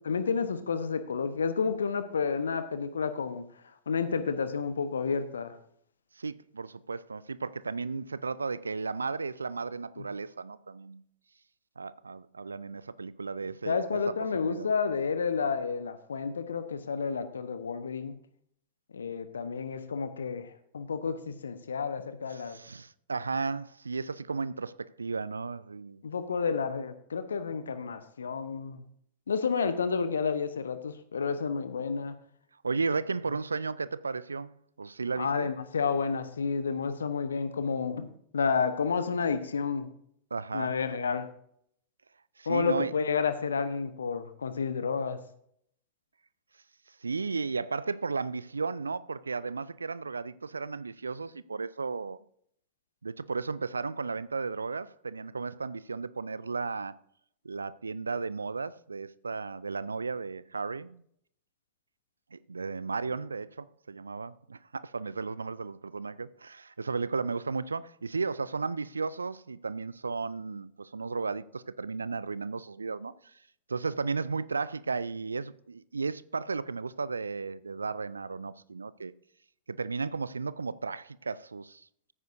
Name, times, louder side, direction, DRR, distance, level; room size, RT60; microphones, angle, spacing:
voice 1, 0.0-3.5 3.9-5.5 10.0-10.1 13.7-18.2 18.9-22.6 26.0-28.8 29.3-32.1 35.2-38.1 38.3-39.9 40.5-41.3 42.5-45.2, left 5 dB, 70° left, 1.0 m, -30 dB
voice 2, 6.2-11.0 11.8-14.7 22.3-26.0 32.6-35.5 40.3-40.8 42.4-42.9 47.0-52.2 53.0-57.0 57.4-61.0 62.3-73.1 73.7-79.1 79.7-81.9, right 4 dB, 75° right, 0.4 m, -34 dB
14.5 x 9.2 x 2.7 m
figure-of-eight pair, 90°, 0 cm